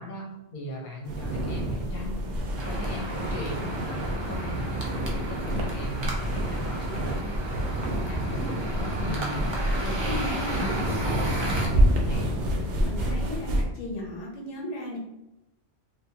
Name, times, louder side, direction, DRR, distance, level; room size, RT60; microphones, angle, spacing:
voice 1, 0.0-2.3 2.7-9.7 10.3-12.4, equal, 45° left, -3 dB, 0.9 m, -38 dB
sound 1, 1.0-13.6, equal, 65° right, 0.7 m, -28 dB
sound 2, 2.6-11.7, right 1 dB, 45° right, 0.3 m, -34 dB
voice 2, 9.8-10.8 12.7-15.0, left 1 dB, 75° left, -3 dB, 1.0 m, -36 dB
2.7 x 2.2 x 2.7 m, 0.94 s
omnidirectional pair, 1.3 m